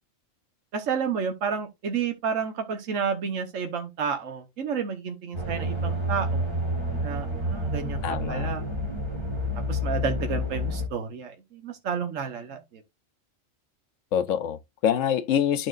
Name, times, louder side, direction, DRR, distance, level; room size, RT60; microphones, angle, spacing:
voice 1, 0.7-6.5 7.0-8.0 8.3-8.7 9.7-12.8, right 6 dB, 75° right, 1.4 m, -30 dB
sound 1, 5.3-10.9, equal, 20° right, 2.1 m, -29 dB
voice 2, 8.0-8.5 14.1-15.7, left 9 dB, 75° left, 1.0 m, -25 dB
12.0 x 4.3 x 2.4 m
omnidirectional pair, 1.4 m